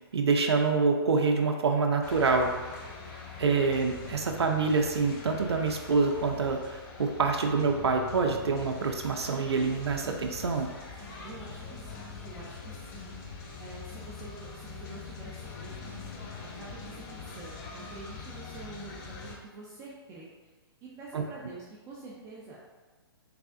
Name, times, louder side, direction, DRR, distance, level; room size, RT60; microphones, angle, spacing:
voice 1, 0.1-2.6 3.4-10.7 21.1-21.2, right 4 dB, 85° right, 3 dB, 0.4 m, -26 dB
sound 1, 2.0-19.4, left 4 dB, 40° left, 0.7 m, -43 dB
voice 2, 11.2-15.9 16.4-20.5 20.8-22.6, right 3 dB, 25° right, -5 dB, 0.5 m, -47 dB
3.5 x 3.3 x 2.4 m, 1.3 s
hypercardioid pair, 130°, 13 cm